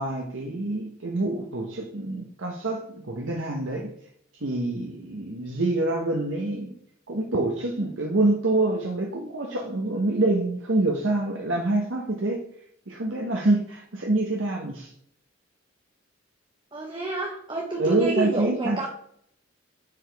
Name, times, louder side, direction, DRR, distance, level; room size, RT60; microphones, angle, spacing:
voice 1, 0.0-3.9 4.3-6.7 7.1-12.4 12.9-14.9 17.8-18.9, right 2 dB, 85° right, 0 dB, 1.2 m, -26 dB
voice 2, 16.7-18.9, right 2 dB, 25° right, 0 dB, 1.1 m, -29 dB
9.9 x 5.0 x 3.5 m, 0.67 s
head